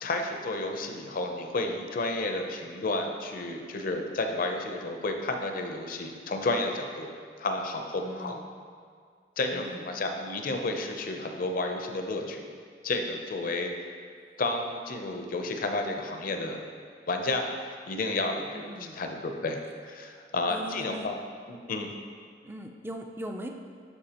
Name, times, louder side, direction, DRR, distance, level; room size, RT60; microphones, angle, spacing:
voice 1, 0.0-7.1 7.4-8.4 9.4-12.4 12.8-13.7 14.4-16.6 17.1-17.5 17.9-21.2 21.5-21.9, left 2 dB, 50° left, 4 dB, 0.6 m, -31 dB
voice 2, 8.0-8.5 9.5-9.9 18.5-19.0 20.0-20.2 20.5-21.1 22.4-23.5, equal, 15° right, 3 dB, 0.4 m, -40 dB
11.5 x 4.8 x 2.9 m, 2.1 s
head